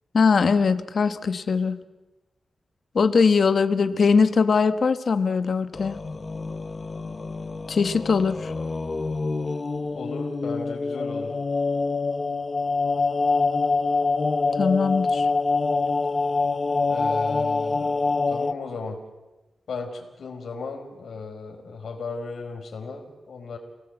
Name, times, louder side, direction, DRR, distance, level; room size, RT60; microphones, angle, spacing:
voice 1, 0.1-1.8 2.9-6.0 7.7-8.5 14.6-15.3, left 5 dB, 55° left, 10 dB, 1.2 m, -21 dB
sound 1, 5.7-18.5, left 3 dB, 30° left, 0.7 m, -25 dB
voice 2, 9.9-11.3 16.9-19.0 19.7-23.6, left 4 dB, 90° left, 3 dB, 4.6 m, -36 dB
29.0 x 18.5 x 8.0 m, 1.1 s
wide cardioid pair, 170°, 0 cm